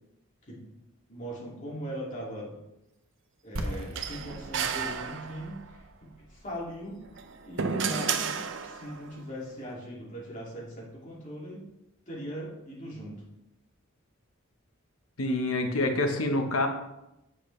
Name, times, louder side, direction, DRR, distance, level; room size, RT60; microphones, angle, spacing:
voice 1, 1.1-2.6 3.4-7.0 7.4-11.6 12.1-13.2, equal, 35° left, -5 dB, 2.4 m, -40 dB
sound 1, 3.6-9.3, equal, 80° right, 1.0 m, -42 dB
sound 2, 4.0-5.7 7.0-9.1, right 6 dB, 60° right, 0.5 m, -32 dB
voice 2, 15.2-16.7, left 2 dB, 90° left, 5 dB, 1.0 m, -26 dB
8.0 x 6.2 x 3.2 m, 0.90 s
head